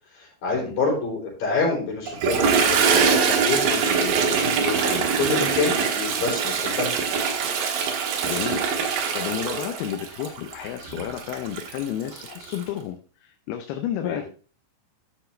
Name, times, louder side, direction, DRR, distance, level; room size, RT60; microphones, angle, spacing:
voice 1, 0.1-6.9 14.0-14.2, left 4 dB, 60° left, -3 dB, 5.5 m, -27 dB
Toilet flush, 2.1-12.6, right 6 dB, 70° right, 2.8 m, -23 dB
voice 2, 8.2-8.7 9.1-14.3, left 10 dB, 80° left, 5 dB, 2.6 m, -31 dB
11.5 x 5.9 x 3.3 m, 0.38 s
omnidirectional pair, 4.5 m